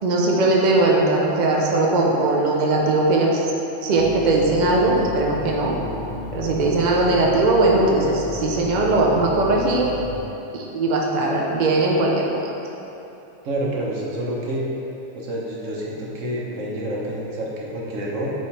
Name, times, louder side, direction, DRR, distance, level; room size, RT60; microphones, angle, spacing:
voice 1, 0.0-3.5 3.8-5.8 6.3-9.9 10.5-12.5, right 2 dB, 45° right, -2 dB, 0.7 m, -19 dB
sound 1, 4.0-10.2, left 2 dB, 60° left, 0.6 m, -34 dB
voice 2, 13.4-14.7 15.1-18.3, right 1 dB, 80° right, -4 dB, 1.3 m, -28 dB
7.0 x 3.2 x 4.6 m, 3.0 s
omnidirectional pair, 1.3 m